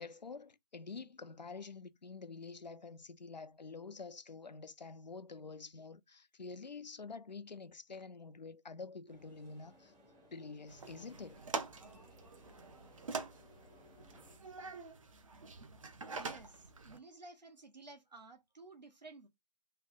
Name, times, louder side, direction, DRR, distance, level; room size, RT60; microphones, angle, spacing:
voice 1, 0.0-9.9 10.3-11.4, left 4 dB, 85° left, 0.5 m, -48 dB
sound 1, 9.1-14.4, left 1 dB, 10° right, 0.7 m, -63 dB
sound 2, 10.7-17.0, right 4 dB, 50° right, 0.7 m, -45 dB
voice 2, 16.2-19.3, right 3 dB, 80° right, 1.2 m, -54 dB
3.2 x 2.3 x 4.0 m
figure-of-eight pair, 145°, 21 cm